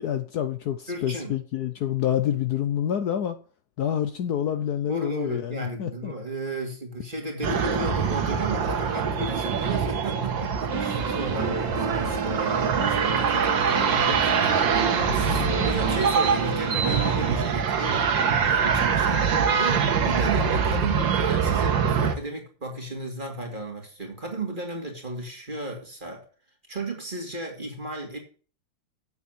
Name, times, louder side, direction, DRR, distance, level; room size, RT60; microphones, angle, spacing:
voice 1, 0.0-3.4 3.8-6.1 15.3-15.5, left 10 dB, 65° left, 1.2 m, -27 dB
voice 2, 0.9-1.3 4.9-18.1 18.5-26.2 26.7-28.2, right 2 dB, 25° right, 2.6 m, -34 dB
sound 1, 7.4-22.2, right 6 dB, 85° right, 2.0 m, -24 dB
sound 2, 10.7-17.4, right 4 dB, 65° right, 2.2 m, -31 dB
8.2 x 7.1 x 7.5 m
omnidirectional pair, 2.0 m